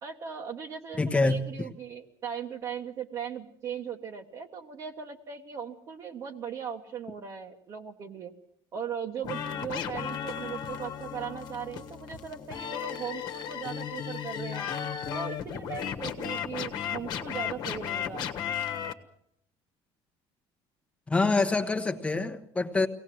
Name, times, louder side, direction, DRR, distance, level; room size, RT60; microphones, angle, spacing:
voice 1, 0.0-8.3 8.7-14.6 15.1-18.3, right 7 dB, 30° right, 1 dB, 1.2 m, -38 dB
voice 2, 1.0-1.7 21.1-22.9, left 3 dB, 10° left, 6 dB, 1.1 m, -26 dB
sound 1, 9.2-18.9, left 8 dB, 45° left, 1.4 m, -35 dB
24.5 x 18.0 x 7.7 m, 0.72 s
cardioid pair, 180°, 10 cm